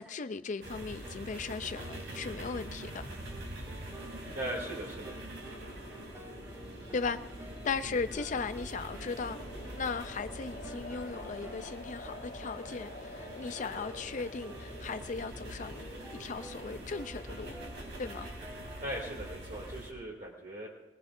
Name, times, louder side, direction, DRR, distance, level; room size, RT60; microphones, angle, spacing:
voice 1, 0.0-3.1 6.9-7.2 7.6-9.4 9.8-15.9 16.1-17.6 18.0-18.3, left 4 dB, 45° left, 0.5 m, -37 dB
sound 1, 0.5-19.8, right 1 dB, 15° right, 0.9 m, -52 dB
sound 2, 0.6-19.9, right 1 dB, 75° right, 3.1 m, -45 dB
voice 2, 4.3-5.1 7.8-7.9 18.8-20.7, right 1 dB, 50° right, 2.5 m, -39 dB
sound 3, 5.3-16.9, left 2 dB, 65° left, 2.6 m, -48 dB
21.5 x 19.0 x 2.6 m
head